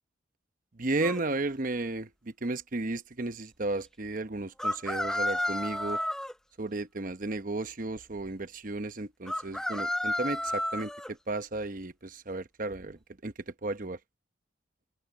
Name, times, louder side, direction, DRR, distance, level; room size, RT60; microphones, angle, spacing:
voice 1, 0.8-6.0 6.6-13.3 13.6-14.0, right 2 dB, 45° right, 1.0 m, -34 dB
sound 1, 1.0-1.2 4.6-6.3 9.3-11.1, left 1 dB, 5° left, 0.5 m, -31 dB
open air
head